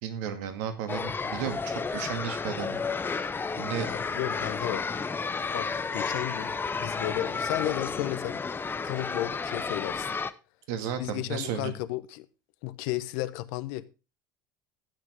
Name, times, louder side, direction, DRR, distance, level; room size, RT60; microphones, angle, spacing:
voice 1, 0.0-2.8 3.1-3.3 3.6-3.9 10.7-11.7, right 8 dB, 60° right, 2.1 m, -34 dB
sound 1, 0.9-10.3, left 4 dB, 20° left, 0.8 m, -32 dB
voice 2, 3.8-4.9 5.5-6.5 6.8-8.4 8.8-10.1 11.0-12.3 12.6-13.8, left 16 dB, 60° left, 0.9 m, -33 dB
13.0 x 9.2 x 3.7 m
figure-of-eight pair, 75°, 11 cm